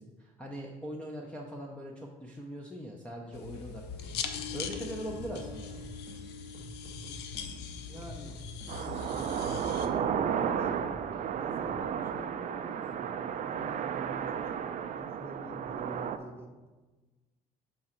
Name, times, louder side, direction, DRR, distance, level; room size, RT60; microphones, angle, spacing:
voice 1, 0.0-4.2 4.5-5.7, equal, 5° left, -1 dB, 0.6 m, -41 dB
sound 1, 3.3-9.9, left 6 dB, 80° left, 0.6 m, -41 dB
sound 2, 3.5-3.7 4.0-6.2 6.5-8.7 9.1-11.2 11.6-11.8, equal, 35° left, 1.9 m, -48 dB
voice 2, 7.9-8.4 8.6-10.7 11.4-16.5, right 1 dB, 15° right, 2 dB, 1.0 m, -47 dB
sound 3, 8.7-16.2, right 8 dB, 45° right, 0.4 m, -33 dB
7.0 x 3.8 x 4.4 m, 1.2 s
cardioid pair, 110°, 17 cm